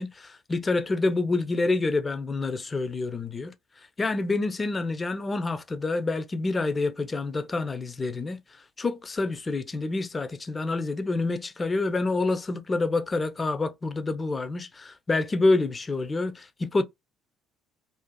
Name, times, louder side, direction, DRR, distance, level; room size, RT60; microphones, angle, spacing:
voice 1, 0.0-3.5 4.0-8.4 8.8-16.8, left 3 dB, 30° left, 0.4 m, -27 dB
2.5 x 2.4 x 2.2 m
hypercardioid pair, 60°, 0 cm